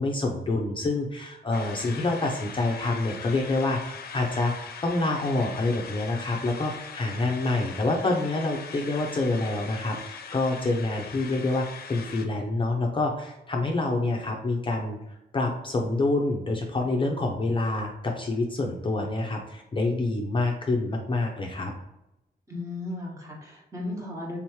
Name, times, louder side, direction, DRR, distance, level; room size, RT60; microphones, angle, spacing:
voice 1, 0.0-4.5 4.8-15.0 15.3-21.7, left 2 dB, 30° left, 1 dB, 0.6 m, -27 dB
sound 1, 1.5-12.3, left 6 dB, 70° left, 0.6 m, -41 dB
voice 2, 22.5-24.4, left 2 dB, 20° right, -3 dB, 1.4 m, -35 dB
3.5 x 3.0 x 4.6 m, 0.90 s
wide cardioid pair, 120°, 16 cm